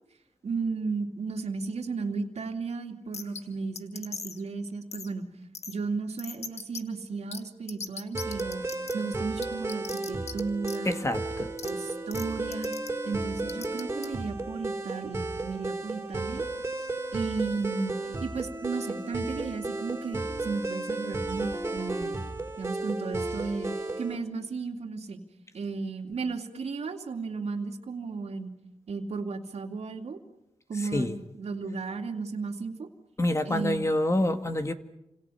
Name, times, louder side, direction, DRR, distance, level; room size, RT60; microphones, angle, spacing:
voice 1, 0.4-5.3 5.7-8.6 8.9-10.9 11.6-12.7 13.0-16.4 16.8-18.0 18.2-22.2 22.6-25.2 25.5-28.5 28.9-30.2 30.7-32.9 33.4-33.8, right 4 dB, 70° right, 2.9 m, -34 dB
sound 1, 3.1-3.4 3.8-4.4 4.9-5.1 5.5-5.7 6.2-6.8 7.3-7.4 7.7-8.9 9.4-10.4 10.6-10.8 11.6-11.7 12.1-12.2 12.5-12.9 13.5-14.1, left 5 dB, 70° left, 1.7 m, -38 dB
sound 2, 8.1-24.2, right 2 dB, 20° right, 4.6 m, -34 dB
voice 2, 10.9-11.5 30.9-31.2 33.2-34.7, left 1 dB, 25° left, 2.0 m, -27 dB
29.5 x 26.5 x 5.8 m
cardioid pair, 75°, 12 cm